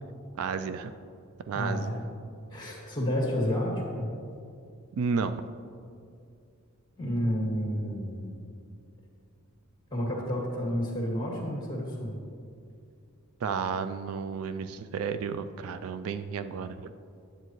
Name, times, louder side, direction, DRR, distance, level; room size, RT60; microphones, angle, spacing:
voice 1, 0.4-0.9 1.5-1.9 4.9-5.4 13.4-16.9, right 5 dB, 70° right, 11 dB, 0.3 m, -32 dB
voice 2, 1.5-2.0 2.5-4.1 7.0-8.5 9.9-12.2, equal, 20° left, -2 dB, 1.9 m, -30 dB
10.0 x 8.0 x 3.1 m, 2.4 s
head